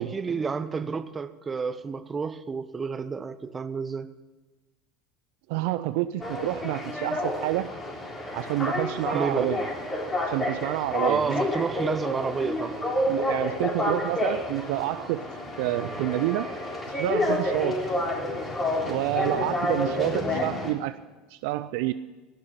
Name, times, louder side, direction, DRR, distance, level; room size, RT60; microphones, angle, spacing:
voice 1, 0.0-4.1 9.1-9.6 11.0-12.8, right 5 dB, 25° right, 0.9 m, -30 dB
voice 2, 5.5-7.7 8.3-9.6 10.2-11.3 13.1-15.2 15.6-16.5 16.9-17.8 18.8-21.0 21.3-21.9, right 16 dB, 65° right, 0.4 m, -28 dB
sound 1, 6.2-20.7, left 1 dB, 25° left, 3.7 m, -29 dB
16.5 x 6.5 x 8.9 m
hypercardioid pair, 75°, 0 cm